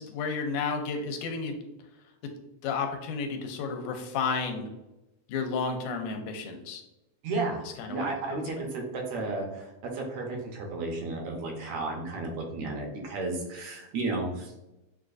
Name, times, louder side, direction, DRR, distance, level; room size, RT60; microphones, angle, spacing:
voice 1, 0.0-1.5 2.6-4.7 5.3-6.8 7.8-8.4, left 5 dB, 85° left, 4 dB, 2.0 m, -32 dB
voice 2, 7.2-14.5, right 3 dB, 75° right, 1 dB, 1.8 m, -33 dB
6.4 x 2.4 x 2.4 m, 0.95 s
omnidirectional pair, 3.5 m